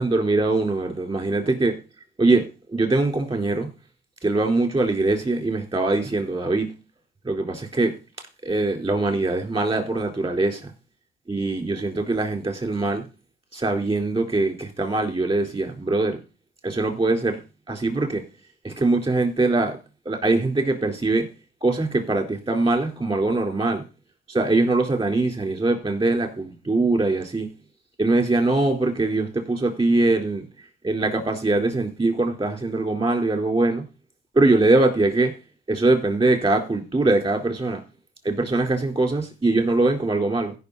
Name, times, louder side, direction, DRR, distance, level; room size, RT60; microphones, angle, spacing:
voice 1, 0.0-1.7 2.2-2.5 2.7-3.7 4.2-6.7 7.2-7.9 8.4-10.7 11.3-13.0 13.5-16.2 16.6-17.4 17.7-18.2 18.6-19.8 20.1-21.3 21.6-23.8 24.3-27.5 28.0-30.5 30.8-33.8 34.3-35.3 35.7-37.8 38.2-40.5, right 2 dB, 30° right, 4 dB, 3.9 m, -22 dB
16.0 x 5.9 x 4.1 m, 0.30 s
cardioid pair, 90°, 20 cm